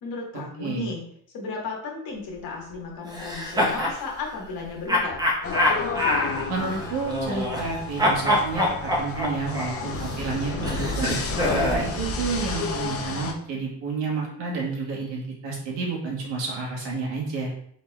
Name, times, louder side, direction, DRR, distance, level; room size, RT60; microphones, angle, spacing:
voice 1, 0.0-1.0 1.3-5.2, left 4 dB, 55° left, -1 dB, 1.4 m, -34 dB
voice 2, 0.6-0.9 6.5-11.2 11.5-17.5, right 4 dB, 80° right, -2 dB, 1.4 m, -30 dB
sound 1, 3.1-4.0 4.9-7.7 8.0-11.9, left 1 dB, 10° right, 0.6 m, -25 dB
sound 2, 5.4-13.3, left 3 dB, 35° left, 0.5 m, -31 dB
4.0 x 3.9 x 2.3 m, 0.65 s
cardioid pair, 165°, 43 cm